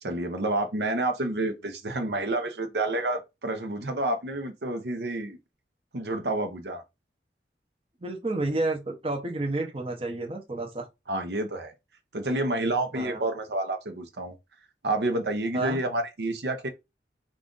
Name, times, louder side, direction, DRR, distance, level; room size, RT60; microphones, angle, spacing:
voice 1, 0.0-5.4 5.9-6.8 11.1-11.7 12.1-14.3 14.8-16.7, right 2 dB, 70° right, 0.8 m, -29 dB
voice 2, 8.0-10.9 12.9-13.2 15.5-15.8, right 2 dB, 30° right, 0.8 m, -30 dB
4.7 x 2.5 x 3.8 m
head